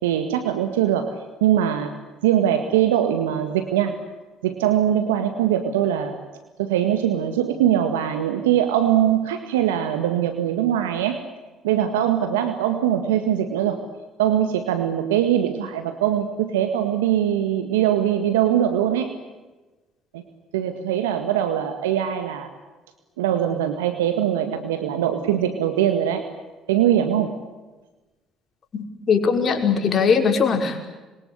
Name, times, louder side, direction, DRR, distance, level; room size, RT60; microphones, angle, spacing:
voice 1, 0.0-1.2 1.4-1.9 2.2-4.0 4.4-6.2 6.6-11.2 11.6-13.8 14.2-19.1 20.1-20.2 20.5-22.5 23.2-26.2 26.7-27.4, right 10 dB, 85° right, 7 dB, 1.8 m, -22 dB
voice 2, 28.7-30.9, left 6 dB, 45° left, 4 dB, 5.5 m, -20 dB
27.0 x 23.5 x 8.3 m, 1.2 s
hypercardioid pair, 60°, 0 cm